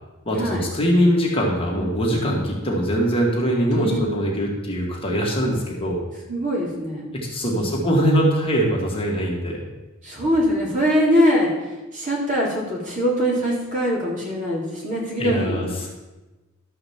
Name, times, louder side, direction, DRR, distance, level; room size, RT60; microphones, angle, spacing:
voice 1, 0.3-6.0 7.3-9.6 15.2-15.9, equal, 25° left, -2 dB, 2.1 m, -22 dB
voice 2, 6.3-7.0 7.5-7.8 10.0-15.6, equal, 40° right, -4 dB, 3.7 m, -22 dB
12.5 x 5.7 x 7.3 m, 1.1 s
head